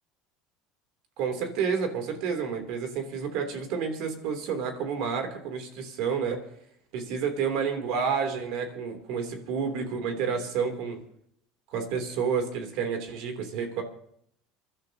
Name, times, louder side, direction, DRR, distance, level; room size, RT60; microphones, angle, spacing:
voice 1, 1.2-6.4 6.9-11.0 11.7-13.8, right 6 dB, 70° right, 5 dB, 3.1 m, -30 dB
28.0 x 12.0 x 2.9 m, 0.70 s
supercardioid pair, 115°, 0 cm